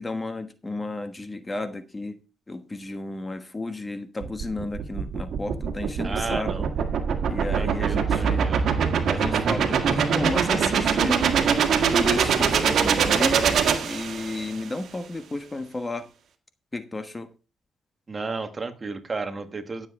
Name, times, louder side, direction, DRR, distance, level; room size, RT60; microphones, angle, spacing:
voice 1, 0.0-2.2 2.5-6.5 7.3-8.5 9.1-11.2 11.9-13.5 13.8-16.1 16.7-17.3, left 2 dB, 20° left, 9 dB, 1.2 m, -32 dB
sound 1, 4.2-14.5, right 7 dB, 65° right, 1.7 m, -23 dB
voice 2, 6.0-6.7 7.5-8.7 18.1-19.9, right 3 dB, 30° right, 9 dB, 1.4 m, -33 dB
15.5 x 7.5 x 3.6 m, 0.31 s
cardioid pair, 90°, 0 cm